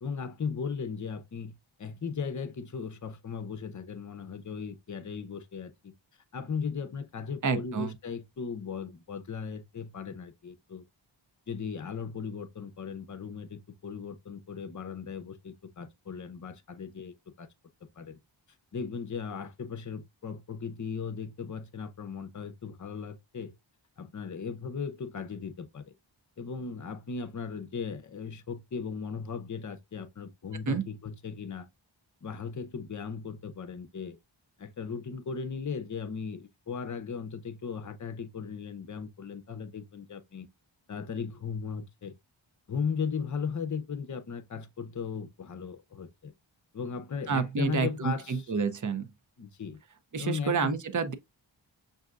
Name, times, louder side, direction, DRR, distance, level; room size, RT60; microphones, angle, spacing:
voice 1, 0.0-5.9 6.3-10.8 11.5-17.5 18.0-18.2 18.7-23.6 24.0-25.9 26.4-31.7 32.2-34.2 34.6-40.5 40.9-42.1 42.7-46.3 46.7-48.5 49.4-49.8 50.2-50.8, left 6 dB, 40° left, 0.6 m, -37 dB
voice 2, 7.4-7.9 30.7-30.8 47.3-49.1 50.1-51.1, right 5 dB, 40° right, 0.6 m, -29 dB
6.3 x 2.7 x 2.4 m
wide cardioid pair, 80°, 47 cm